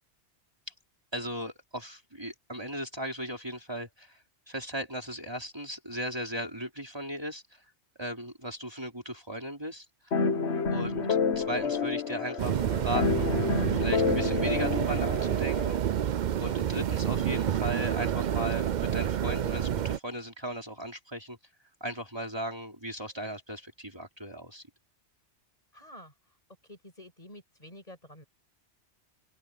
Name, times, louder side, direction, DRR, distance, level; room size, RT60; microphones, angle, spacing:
voice 1, 1.1-7.6 8.0-9.9 10.7-13.3 13.7-15.8 16.4-21.4 21.8-24.6, equal, 20° right, 4.2 m, -37 dB
sound 1, 10.1-15.8, left 5 dB, 75° left, 1.6 m, -29 dB
sound 2, 12.4-20.0, right 10 dB, 55° right, 0.6 m, -29 dB
voice 2, 25.7-26.1 26.7-28.2, left 1 dB, 35° left, 8.2 m, -49 dB
open air
omnidirectional pair, 1.2 m